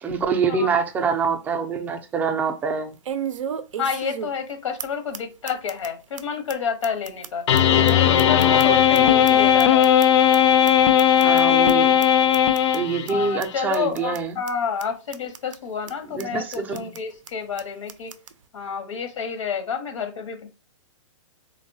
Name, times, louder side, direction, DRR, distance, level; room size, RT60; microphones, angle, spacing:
voice 1, 0.0-2.9 11.2-12.0 12.7-14.4 16.1-16.9, right 5 dB, 10° right, 0.3 m, -25 dB
sound 1, 0.7-0.8 1.2-1.3 3.0-4.5 4.8-4.9 5.1-5.2 5.5-5.9 6.2-6.3 6.5-6.6 6.8-9.0 9.2-10.4 10.6-10.7 11.0-11.4 11.7-11.8 12.0-12.1 12.3-12.8 13.1-13.2 13.4-13.5 13.7-14.2 14.5-14.6 14.8-14.9 15.1-15.6 15.9-16.0 16.2-16.3 16.5-17.0 17.3-17.4 17.6-17.7 17.9-18.3, right 8 dB, 90° right, 0.4 m, -34 dB
voice 2, 3.8-7.5 7.8-9.9 13.1-18.1 18.5-20.5, left 6 dB, 85° left, 0.8 m, -29 dB
sound 2, 7.5-13.3, left 10 dB, 65° left, 0.4 m, -17 dB
3.0 x 2.1 x 2.6 m
hypercardioid pair, 140°, 16 cm